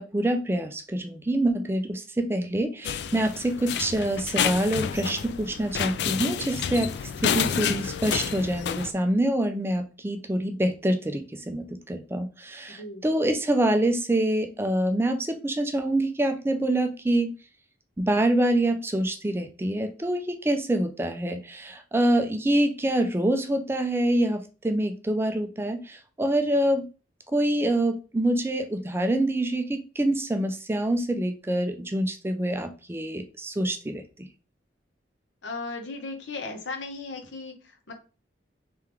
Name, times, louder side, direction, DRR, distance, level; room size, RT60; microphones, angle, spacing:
voice 1, 0.0-6.9 7.2-17.3 18.0-26.9 27.3-34.0, right 1 dB, 15° right, 7 dB, 0.4 m, -26 dB
sound 1, 2.8-8.9, left 8 dB, 65° left, 0.3 m, -29 dB
voice 2, 35.4-37.9, left 3 dB, 90° left, 4 dB, 1.1 m, -36 dB
3.5 x 3.3 x 3.3 m, 0.33 s
head